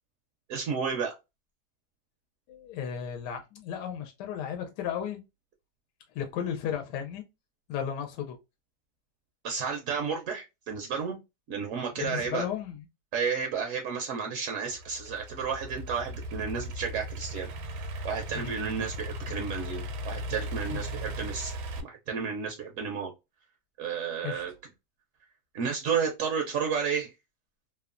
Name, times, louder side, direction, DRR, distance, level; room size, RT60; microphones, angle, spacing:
voice 1, 0.5-1.1 9.4-11.2 11.5-12.5 13.1-17.5 18.0-21.5 21.8-23.1 23.8-24.5 25.5-27.1, right 6 dB, 70° right, 0.7 m, -32 dB
voice 2, 2.5-5.2 6.1-7.2 7.7-8.4 12.0-12.8 18.3-18.6 20.7-20.9 24.2-24.4, left 8 dB, 85° left, 1.2 m, -34 dB
Idling / Accelerating revving vroom, 14.7-21.8, equal, 90° right, 1.2 m, -37 dB
3.0 x 2.1 x 2.4 m
omnidirectional pair, 1.8 m